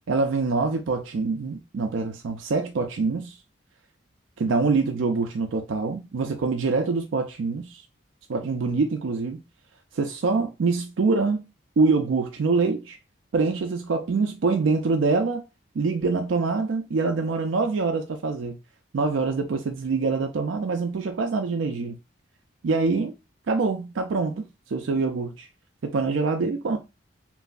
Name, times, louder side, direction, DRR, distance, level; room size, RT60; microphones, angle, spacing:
voice 1, 0.1-3.4 4.4-7.8 8.3-9.4 9.9-11.4 11.8-13.0 13.3-15.4 15.8-18.6 18.9-22.0 22.6-23.1 23.5-24.4 24.7-25.5 25.8-26.8, right 4 dB, 75° right, 0.4 m, -25 dB
3.0 x 2.6 x 2.4 m
head